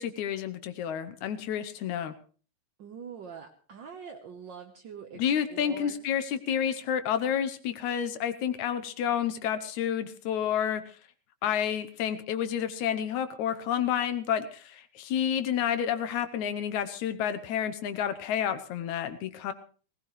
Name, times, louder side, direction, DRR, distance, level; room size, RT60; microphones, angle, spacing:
voice 1, 0.0-2.1 5.2-10.8 11.4-19.5, left 9 dB, 80° left, 11 dB, 2.3 m, -30 dB
voice 2, 2.8-6.0, right 6 dB, 60° right, 2 dB, 1.2 m, -44 dB
19.0 x 17.0 x 3.2 m, 0.40 s
omnidirectional pair, 3.4 m